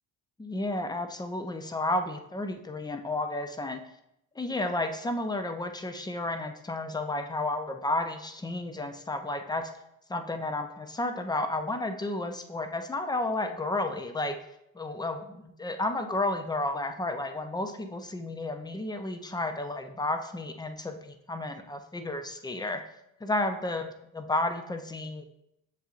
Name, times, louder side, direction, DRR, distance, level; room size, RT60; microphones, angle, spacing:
voice 1, 0.4-3.8 4.4-9.7 10.1-14.4 14.7-22.8 23.2-25.2, left 2 dB, 10° left, 7 dB, 0.4 m, -32 dB
7.3 x 2.6 x 2.4 m, 0.80 s
supercardioid pair, 60°, 49 cm